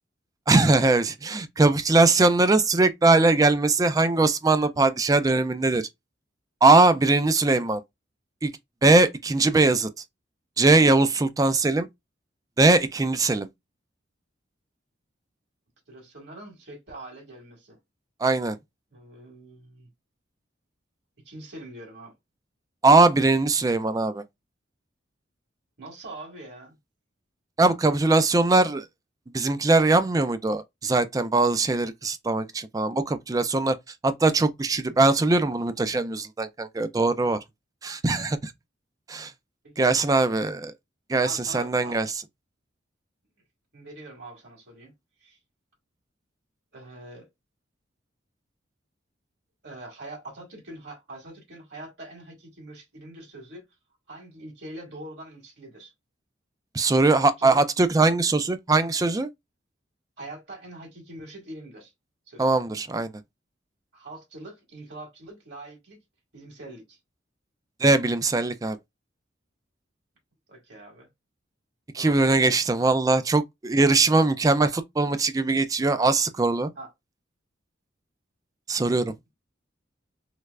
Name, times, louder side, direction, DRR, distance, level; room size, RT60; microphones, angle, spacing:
voice 1, 0.5-5.9 6.6-7.8 8.4-8.5 8.8-9.9 10.6-11.9 12.6-13.5 18.2-18.6 22.8-24.2 27.6-28.8 29.3-33.8 34.0-37.4 37.8-38.5 39.1-39.3 39.8-40.7 41.1-42.1 56.7-59.3 62.4-63.1 67.8-68.8 71.9-76.7 78.7-79.1, right 3 dB, 20° right, 0.3 m, -21 dB
voice 2, 15.9-17.8 18.9-19.9 21.3-22.1 25.8-26.8 39.6-40.2 41.1-42.0 43.7-44.9 45.2-45.4 46.7-47.3 49.6-53.7 54.1-55.9 57.1-57.6 60.2-61.9 62.3-62.6 63.9-66.0 66.3-67.0 70.5-71.1 72.0-72.3 76.7-76.9, right 2 dB, 60° right, 1.8 m, -43 dB
3.2 x 3.1 x 2.4 m
head